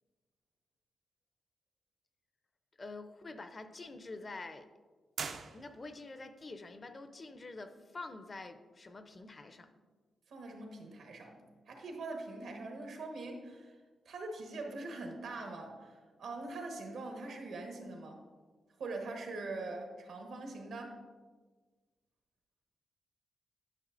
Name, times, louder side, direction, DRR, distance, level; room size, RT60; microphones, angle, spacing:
voice 1, 2.8-4.7 5.5-9.7, left 3 dB, 35° left, 9 dB, 0.5 m, -47 dB
sound 1, 5.1-6.1, right 5 dB, 60° right, 0.4 m, -42 dB
voice 2, 10.3-13.8 14.0-18.2 18.8-21.0, right 2 dB, 80° right, 3 dB, 1.2 m, -43 dB
10.0 x 5.9 x 2.5 m, 1.4 s
cardioid pair, 95°, 0 cm